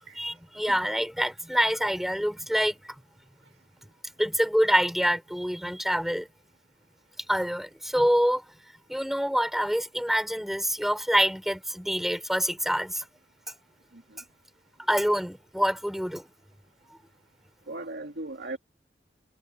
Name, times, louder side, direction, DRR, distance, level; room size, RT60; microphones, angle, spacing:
voice 1, 0.2-2.8 4.2-6.3 7.3-8.4 8.9-13.1 13.5-13.6 14.9-16.3, equal, ahead, 5.3 m, -26 dB
voice 2, 17.7-18.6, right 2 dB, 70° right, 2.5 m, -38 dB
head